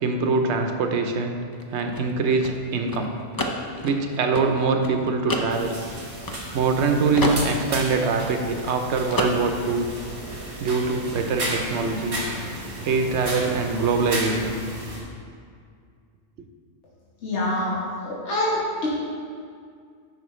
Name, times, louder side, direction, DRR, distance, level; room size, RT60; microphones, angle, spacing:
voice 1, 0.0-1.4 1.7-3.1 3.8-5.8 6.5-9.9 10.6-12.2 12.8-14.6, right 4 dB, 80° right, 5 dB, 1.0 m, -23 dB
sound 1, 1.5-6.8 7.1-8.8 9.1-9.8, left 1 dB, 35° left, 0.3 m, -30 dB
sound 2, 5.5-15.0, right 1 dB, 55° right, 1.6 m, -33 dB
voice 2, 17.2-17.8 18.0-18.9, left 1 dB, 85° left, -7 dB, 1.4 m, -25 dB
9.2 x 5.9 x 3.1 m, 2.2 s
omnidirectional pair, 1.2 m